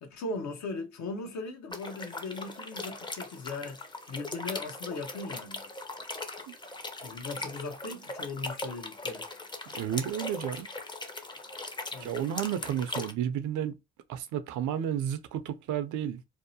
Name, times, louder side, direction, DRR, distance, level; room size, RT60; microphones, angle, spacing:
voice 1, 0.0-3.8 4.1-5.6 7.0-9.3 11.9-12.1, left 3 dB, 65° left, 0.8 m, -38 dB
sound 1, 1.7-13.1, left 2 dB, 15° left, 0.5 m, -40 dB
voice 2, 9.7-10.7 12.0-13.7 14.1-16.2, right 10 dB, 80° right, 0.5 m, -32 dB
2.7 x 2.0 x 2.7 m
cardioid pair, 90°, 30 cm